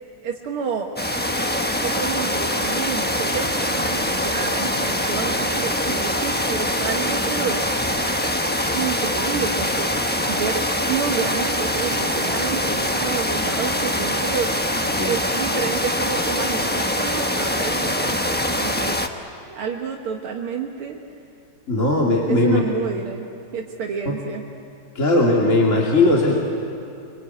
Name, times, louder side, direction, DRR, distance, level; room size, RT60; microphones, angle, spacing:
voice 1, 0.2-0.9 1.8-7.7 8.7-14.6 15.0-19.0 19.5-21.0 22.3-23.3 23.5-24.4, right 6 dB, 80° right, 0 dB, 2.3 m, -29 dB
sound 1, 1.0-19.1, left 1 dB, 10° left, 0.5 m, -23 dB
voice 2, 21.7-22.6 24.1-24.2 24.9-26.3, left 2 dB, 35° left, -3 dB, 2.9 m, -18 dB
25.0 x 24.0 x 9.2 m, 2.6 s
omnidirectional pair, 2.3 m